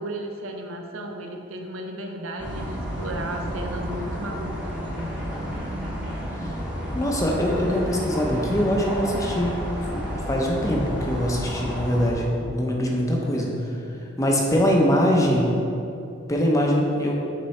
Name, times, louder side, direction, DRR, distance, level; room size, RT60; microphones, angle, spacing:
voice 1, 0.0-5.2, right 1 dB, 75° right, 2 dB, 0.6 m, -34 dB
sound 1, 2.4-12.1, equal, 5° right, 0.9 m, -31 dB
voice 2, 6.9-13.5 14.2-15.5 16.3-17.2, equal, 15° left, -1 dB, 0.6 m, -23 dB
7.0 x 4.7 x 3.2 m, 2.6 s
head